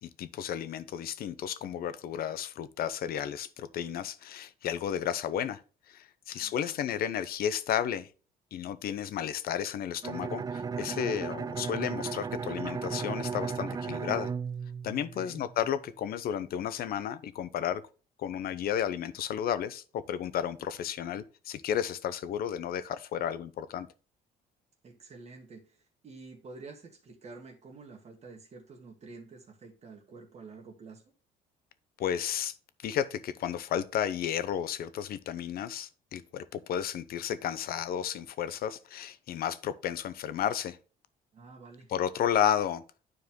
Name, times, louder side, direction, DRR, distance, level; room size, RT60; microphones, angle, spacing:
voice 1, 0.0-5.6 5.9-8.1 8.5-14.3 14.8-17.8 18.2-23.9 32.0-32.6 32.8-40.8 41.9-42.8, left 9 dB, 65° left, 0.9 m, -32 dB
voice 2, 6.3-6.7 15.0-15.4 24.8-31.0 41.3-41.9, right 3 dB, 40° right, 2.0 m, -49 dB
Bowed string instrument, 10.0-15.7, right 5 dB, 20° right, 0.4 m, -35 dB
9.7 x 4.7 x 3.8 m
cardioid pair, 110°, 17 cm